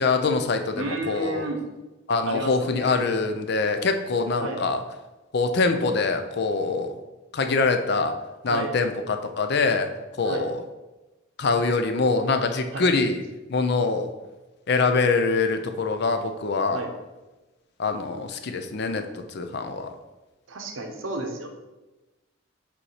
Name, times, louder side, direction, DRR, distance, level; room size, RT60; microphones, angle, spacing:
voice 1, 0.0-1.5 2.1-4.8 5.3-7.0 7.3-8.1 8.4-9.9 10.2-10.6 11.4-13.2 13.5-14.1 14.7-16.8 17.8-19.9, left 3 dB, 55° left, 7 dB, 0.5 m, -24 dB
voice 2, 0.8-1.6 2.3-3.1 4.4-4.6 8.5-8.7 10.2-10.4 12.7-12.9 16.7-16.9 20.5-21.5, right 2 dB, 80° right, 4 dB, 0.9 m, -32 dB
5.4 x 4.2 x 4.8 m, 1.1 s
head